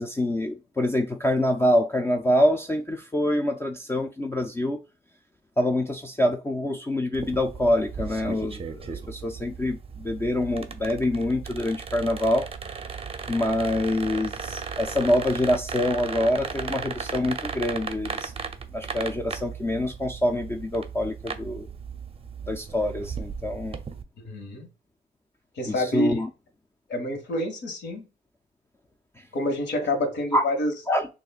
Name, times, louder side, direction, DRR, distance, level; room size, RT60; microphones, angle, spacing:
voice 1, 0.0-4.8 5.6-12.5 13.3-18.3 18.7-21.7 22.5-23.8 25.7-26.3 29.2-29.3 30.3-30.4 30.9-31.1, left 1 dB, 10° left, 0.4 m, -25 dB
sound 1, 7.1-24.0, right 5 dB, 30° right, 0.6 m, -36 dB
voice 2, 24.2-24.7 25.6-26.2 26.9-28.1 29.3-30.7, left 1 dB, 65° left, 1.6 m, -27 dB
6.4 x 2.5 x 2.4 m
cardioid pair, 90°, 20 cm